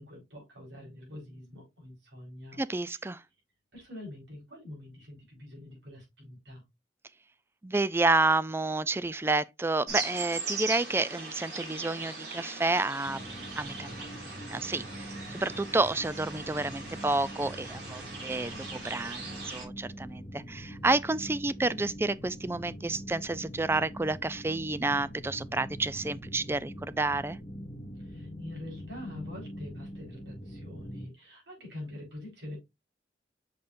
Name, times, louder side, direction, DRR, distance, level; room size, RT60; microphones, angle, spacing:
voice 1, 0.0-2.6 3.7-6.6 28.0-32.6, left 1 dB, 90° right, 4.4 m, -45 dB
voice 2, 2.6-3.2 7.6-13.2 13.6-13.9 14.3-27.4, right 2 dB, 15° right, 0.3 m, -30 dB
sound 1, 9.9-19.7, right 4 dB, 65° right, 3.6 m, -40 dB
sound 2, 13.0-31.1, equal, 40° left, 1.4 m, -43 dB
6.6 x 5.7 x 2.5 m
head